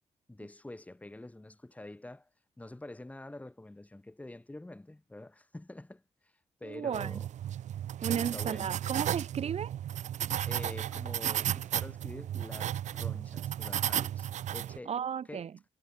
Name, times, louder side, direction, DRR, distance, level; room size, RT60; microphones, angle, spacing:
voice 1, 0.3-2.3 2.6-6.3 6.6-7.3 8.1-8.8 10.4-14.9 15.3-15.7, left 2 dB, 10° left, 4.1 m, -46 dB
voice 2, 6.6-7.2 8.0-9.7 14.9-15.5, right 8 dB, 60° right, 2.4 m, -34 dB
sound 1, 6.9-14.8, right 11 dB, 75° right, 1.1 m, -34 dB
cardioid pair, 105°, 12 cm